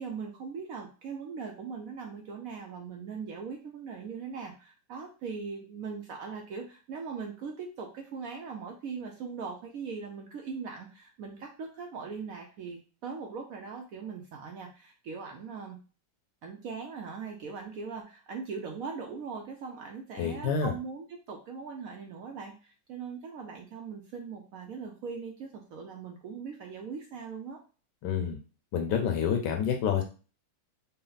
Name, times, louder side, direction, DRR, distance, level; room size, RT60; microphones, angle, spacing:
voice 1, 0.0-15.8 16.4-27.6, right 5 dB, 75° right, 2 dB, 0.8 m, -40 dB
voice 2, 20.2-20.7 28.0-28.4 28.7-30.0, left 7 dB, 70° left, 4 dB, 1.2 m, -28 dB
4.1 x 2.0 x 3.9 m, 0.35 s
omnidirectional pair, 2.0 m